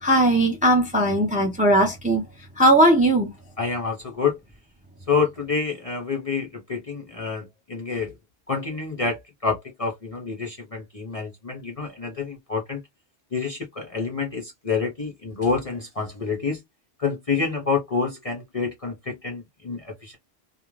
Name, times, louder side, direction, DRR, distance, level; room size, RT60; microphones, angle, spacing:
voice 1, 0.0-2.2 2.6-3.3, right 1 dB, 10° right, 0.5 m, -18 dB
voice 2, 3.6-4.4 5.1-8.1 8.5-12.8 13.3-16.6 17.0-20.2, left 5 dB, 40° left, 0.5 m, -28 dB
2.4 x 2.2 x 3.0 m
omnidirectional pair, 1.2 m